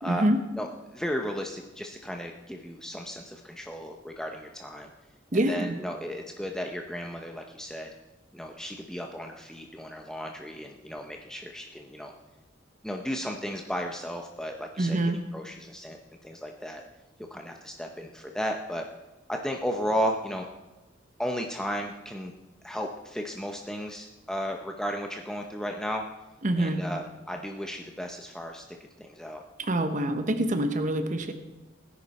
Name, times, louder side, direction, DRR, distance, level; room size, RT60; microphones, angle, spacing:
voice 1, 0.0-0.4 5.3-5.8 14.8-15.2 26.4-26.8 29.6-31.3, right 1 dB, 40° right, 8 dB, 1.0 m, -25 dB
voice 2, 0.6-4.9 5.3-7.9 8.3-12.1 12.8-15.0 15.3-16.0 16.2-16.8 17.3-18.9 19.3-20.5 21.2-22.3 22.6-26.0 26.6-28.6 29.0-29.4, equal, 5° left, 2 dB, 0.7 m, -34 dB
18.0 x 10.5 x 4.2 m, 1.1 s
head